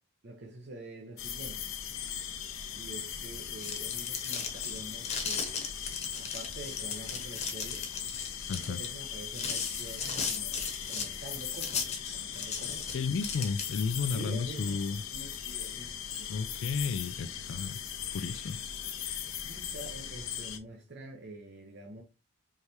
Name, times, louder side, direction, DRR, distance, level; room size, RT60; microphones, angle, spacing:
voice 1, 0.2-1.7 2.8-5.6 6.2-7.9 8.5-12.9 14.1-16.3 17.2-17.3 19.4-22.0, right 2 dB, 50° right, 0.8 m, -46 dB
sound 1, 1.2-20.6, left 9 dB, 85° left, 0.7 m, -39 dB
sound 2, 3.5-14.0, left 5 dB, 30° left, 1.0 m, -37 dB
voice 2, 8.5-8.8 12.9-15.0 16.3-17.8 18.1-18.6, left 5 dB, 60° left, 0.3 m, -33 dB
4.7 x 3.3 x 2.8 m
head